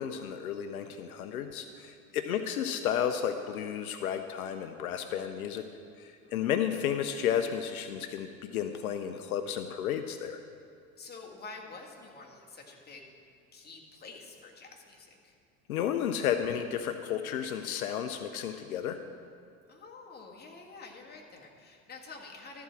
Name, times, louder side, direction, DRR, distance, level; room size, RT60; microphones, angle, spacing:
voice 1, 0.0-5.7 6.0-10.4 15.7-19.0, left 9 dB, 80° left, 8 dB, 0.7 m, -32 dB
voice 2, 11.0-13.1 13.5-15.3 19.7-22.6, left 3 dB, 20° left, -1 dB, 1.8 m, -48 dB
13.0 x 4.7 x 7.4 m, 2.3 s
hypercardioid pair, 80°, 43 cm